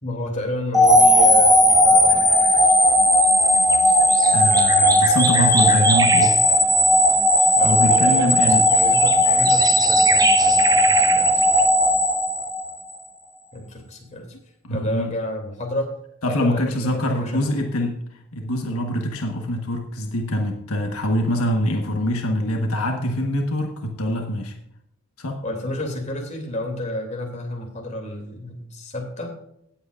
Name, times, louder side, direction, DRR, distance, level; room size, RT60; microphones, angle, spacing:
voice 1, 0.0-2.3 7.5-11.4 13.5-14.3 14.7-15.9 16.3-17.4 25.4-29.3, left 1 dB, 30° left, 1 dB, 2.8 m, -31 dB
sound 1, 0.7-12.9, left 1 dB, ahead, 1.7 m, -16 dB
sound 2, 2.1-2.7 3.1-6.8 7.1-7.2 7.4-11.7, right 4 dB, 15° right, 0.7 m, -28 dB
voice 2, 4.3-6.3 7.6-8.7 14.6-15.1 16.2-17.9 18.3-24.5 25.2-25.4, equal, 75° left, 3 dB, 1.3 m, -24 dB
17.5 x 8.0 x 2.5 m, 0.75 s
head